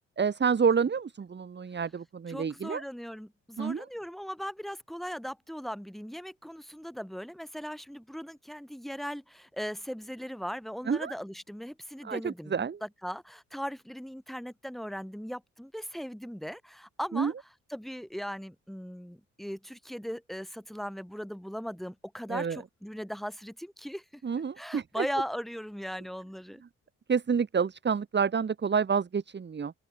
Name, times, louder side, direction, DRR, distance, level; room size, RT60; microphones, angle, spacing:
voice 1, 0.2-2.8 3.6-3.9 10.9-11.1 12.0-12.8 17.1-17.3 22.3-22.6 24.2-25.1 27.1-29.7, right 6 dB, 35° right, 2.3 m, -28 dB
voice 2, 2.3-17.3 17.7-24.2 24.6-26.6, equal, ahead, 7.0 m, -38 dB
open air
cardioid pair, 90°, 30 cm